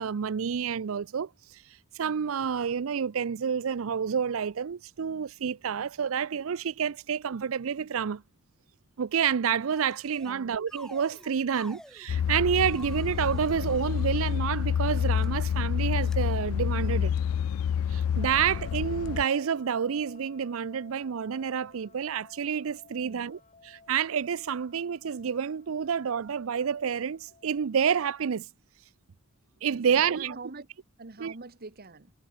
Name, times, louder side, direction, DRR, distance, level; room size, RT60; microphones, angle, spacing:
voice 1, 0.0-1.6 1.9-8.2 9.0-17.1 17.9-28.5 29.6-30.4 31.2-31.3, right 7 dB, 75° right, 0.5 m, -29 dB
sound 1, 9.7-10.4 10.7-12.1 12.6-14.4 15.0-15.3 16.0-16.2, left 1 dB, 5° left, 3.4 m, -49 dB
sound 2, 12.1-19.2, left 8 dB, 85° left, 0.3 m, -28 dB
sound 3, 18.2-27.9, left 3 dB, 35° left, 7.6 m, -55 dB
voice 2, 29.7-30.7 31.0-32.1, right 3 dB, 45° right, 1.3 m, -44 dB
head